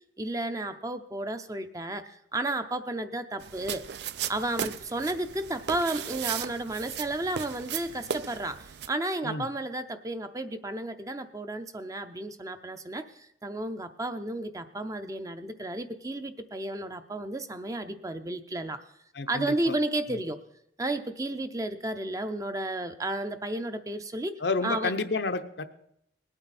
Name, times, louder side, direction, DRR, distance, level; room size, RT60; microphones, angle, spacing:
voice 1, 0.2-3.8 4.3-18.8 19.3-20.4 20.8-24.9, right 2 dB, 20° right, 10 dB, 0.5 m, -32 dB
sound 1, 3.4-8.9, right 9 dB, 70° right, 0.4 m, -36 dB
voice 2, 19.1-19.7 20.1-20.2 24.4-25.6, left 3 dB, 80° left, 9 dB, 0.8 m, -30 dB
19.5 x 8.9 x 4.2 m, 0.73 s
head